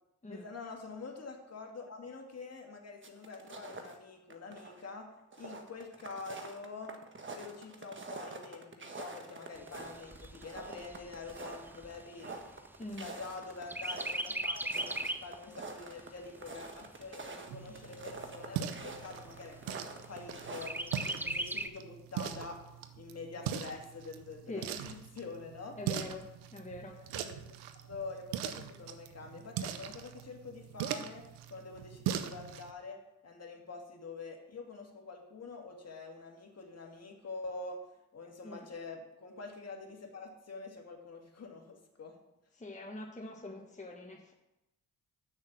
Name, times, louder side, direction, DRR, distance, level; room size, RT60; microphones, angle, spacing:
voice 1, 0.3-5.1 5.4-6.9 7.3-12.4 13.0-22.6 22.9-25.8 27.1-27.4 27.8-31.2 31.5-37.8 38.1-42.2, left 4 dB, 40° left, 1 dB, 2.2 m, -46 dB
sound 1, 3.0-4.0 4.3-4.9 5.2-21.1, right 3 dB, 30° right, 1.4 m, -46 dB
Chirp tweet, 9.6-13.3 13.7-15.4 15.8-15.9 16.2-17.2 17.8-17.9 18.3-18.4 18.8-19.3 20.6-21.7, right 1 dB, 5° right, 0.6 m, -38 dB
voice 2, 12.8-13.1 24.5-24.8 25.8-26.2 26.5-27.1 38.4-38.7 42.6-44.3, left 2 dB, 20° left, -1 dB, 1.6 m, -44 dB
sound 2, 17.5-32.7, right 10 dB, 85° right, 0.7 m, -41 dB
6.4 x 6.3 x 7.5 m, 0.90 s
supercardioid pair, 55°, 38 cm